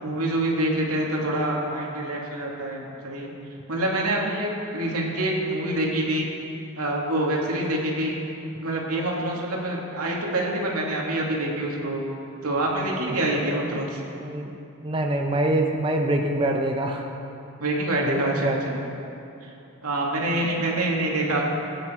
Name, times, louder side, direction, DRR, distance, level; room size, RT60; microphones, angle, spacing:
voice 1, 0.0-3.3 3.7-6.3 6.8-8.2 8.6-12.0 12.4-14.0 17.6-18.8 19.4-19.5 19.8-21.4, right 1 dB, 85° right, -2 dB, 2.6 m, -26 dB
voice 2, 13.1-13.8 14.2-14.6 14.8-17.1 18.0-18.6, right 1 dB, 25° right, 1 dB, 0.8 m, -25 dB
20.5 x 9.8 x 4.6 m, 2.8 s
head